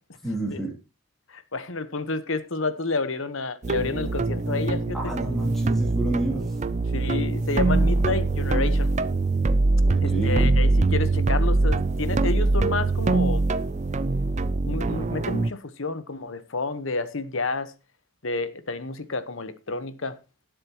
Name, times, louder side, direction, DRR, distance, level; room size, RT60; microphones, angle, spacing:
voice 1, 0.2-0.7 4.9-6.5 9.8-10.6, right 1 dB, ahead, 3.0 m, -30 dB
voice 2, 1.3-5.0 6.9-8.9 10.0-13.4 14.6-17.7 18.2-20.1, left 3 dB, 70° left, 1.2 m, -30 dB
sound 1, 3.6-15.5, right 3 dB, 35° right, 0.5 m, -23 dB
19.0 x 7.6 x 3.0 m
head